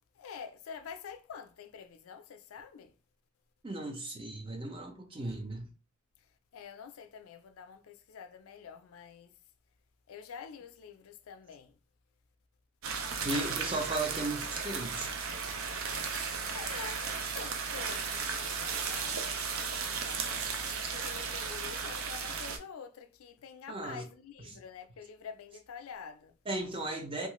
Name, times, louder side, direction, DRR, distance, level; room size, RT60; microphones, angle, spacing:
voice 1, 0.1-3.0 6.2-9.3 10.1-11.8 13.3-13.7 16.5-26.3, left 6 dB, 90° left, 0.4 m, -48 dB
voice 2, 3.6-5.6 13.2-15.1 23.7-24.0 24.5-24.6 26.5-27.3, right 2 dB, 25° right, 0.6 m, -36 dB
sound 1, 12.8-22.6, right 5 dB, 80° right, 0.5 m, -35 dB
3.1 x 2.4 x 2.9 m
head